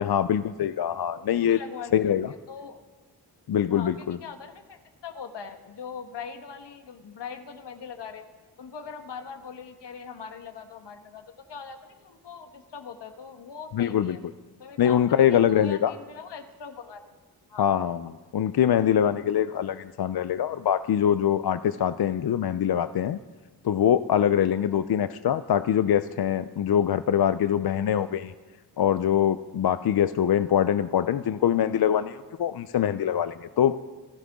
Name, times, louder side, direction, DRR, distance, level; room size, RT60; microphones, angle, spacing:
voice 1, 0.0-1.6 1.9-2.3 3.5-4.2 13.7-14.2 14.8-15.9 17.6-18.0 18.3-23.2 23.6-28.3 28.8-33.8, left 9 dB, 65° left, 12 dB, 0.6 m, -23 dB
voice 2, 1.2-2.1 2.5-2.8 3.7-8.2 8.6-14.2 14.6-17.0 17.5-17.7 24.7-25.0, left 6 dB, 85° left, 6 dB, 1.5 m, -41 dB
26.5 x 13.0 x 3.7 m, 1.3 s
cardioid pair, 55°, 41 cm